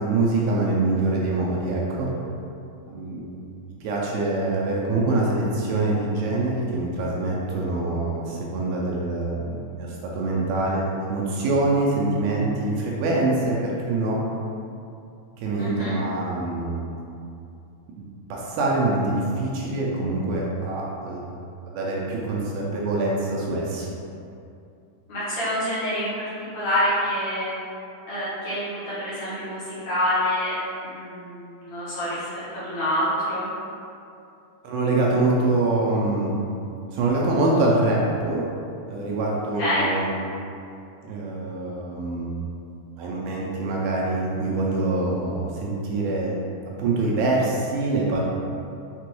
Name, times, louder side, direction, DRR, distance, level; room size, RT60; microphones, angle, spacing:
voice 1, 0.0-2.1 2.9-3.3 3.8-14.2 15.4-16.9 18.3-21.3 21.7-23.9 34.6-36.4 36.9-38.4 38.9-40.1 41.0-42.3 43.0-46.4 46.8-48.2, right 2 dB, 80° right, -3 dB, 2.0 m, -24 dB
voice 2, 15.6-16.0 25.1-27.6 28.1-33.5 39.5-39.8, equal, 65° left, -12 dB, 1.9 m, -27 dB
5.8 x 2.2 x 3.0 m, 2.6 s
omnidirectional pair, 4.0 m